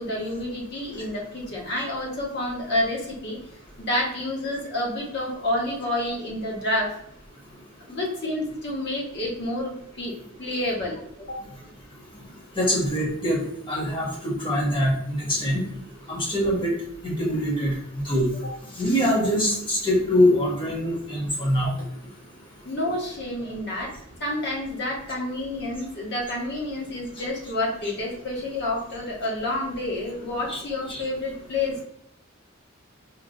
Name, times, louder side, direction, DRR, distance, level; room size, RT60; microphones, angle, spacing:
voice 1, 0.0-3.4 3.8-6.9 7.8-11.4 18.4-18.5 22.6-23.9 24.2-31.8, left 1 dB, 50° left, -3 dB, 1.0 m, -29 dB
voice 2, 12.6-15.6 16.1-16.7 17.0-17.7 18.0-18.3 18.8-21.7 30.5-30.6 30.9-31.0, equal, 25° left, -4 dB, 1.0 m, -23 dB
4.4 x 2.3 x 2.6 m, 0.72 s
head